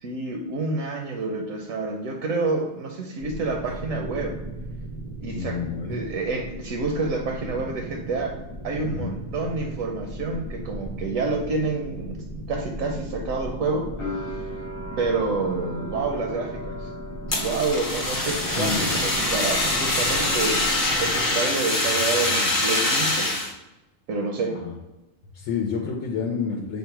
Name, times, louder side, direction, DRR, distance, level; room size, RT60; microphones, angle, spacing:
voice 1, 0.0-4.4 5.2-5.6 5.8-8.3 8.6-14.4 15.0-16.9 17.3-20.6 20.9-23.3 24.1-24.6, right 3 dB, 80° right, 2 dB, 1.0 m, -28 dB
sound 1, 3.2-21.3, right 1 dB, 40° right, 0.4 m, -37 dB
voice 2, 5.3-6.0 8.8-9.1 18.2-18.9 24.5-24.7 25.3-26.8, left 5 dB, 80° left, 0 dB, 1.0 m, -29 dB
sound 2, 14.0-20.8 21.0-21.9, left 1 dB, 50° left, 1.1 m, -39 dB
Fire, 17.3-23.5, left 2 dB, 30° left, 0.8 m, -24 dB
5.4 x 2.1 x 4.4 m, 1.0 s
omnidirectional pair, 1.4 m